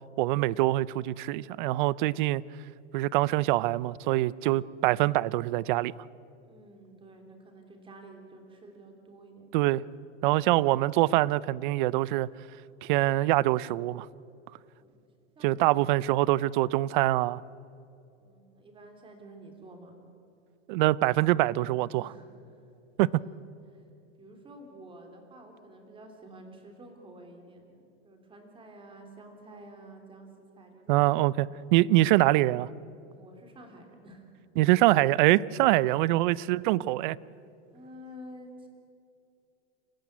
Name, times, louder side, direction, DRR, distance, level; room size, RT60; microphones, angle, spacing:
voice 1, 0.2-2.4 2.9-5.9 9.5-9.8 10.2-12.3 12.8-14.1 15.4-17.4 20.7-22.1 23.0-23.1 30.9-32.7 34.6-37.2, right 17 dB, 45° right, 0.5 m, -24 dB
voice 2, 6.4-9.5 14.8-14.9 15.4-16.3 18.2-19.9 22.0-22.3 23.0-23.4 23.7-23.8 24.2-30.3 30.6-31.5 33.2-34.3 37.7-38.7, right 1 dB, 15° right, 3.2 m, -50 dB
27.5 x 15.0 x 9.5 m
supercardioid pair, 155°, 36 cm